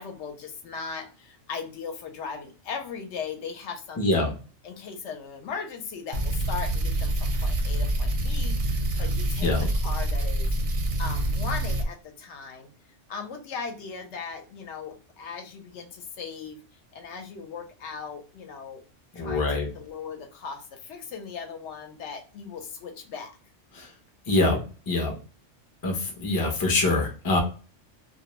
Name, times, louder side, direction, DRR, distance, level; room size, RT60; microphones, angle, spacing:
voice 1, 0.0-4.3 4.6-9.5 9.8-10.5 11.0-12.7 13.1-16.6 16.9-18.8 19.1-19.5 19.7-23.3, left 5 dB, 70° left, 4 dB, 0.8 m, -38 dB
voice 2, 4.0-4.3 9.4-9.7 19.1-19.7 23.7-23.9 24.3-24.6 24.9-25.1 25.8-27.4, left 2 dB, 30° left, 2 dB, 0.4 m, -24 dB
sound 1, 6.1-11.9, right 1 dB, 55° right, 0.6 m, -26 dB
2.2 x 2.1 x 2.9 m, 0.36 s
omnidirectional pair, 1.3 m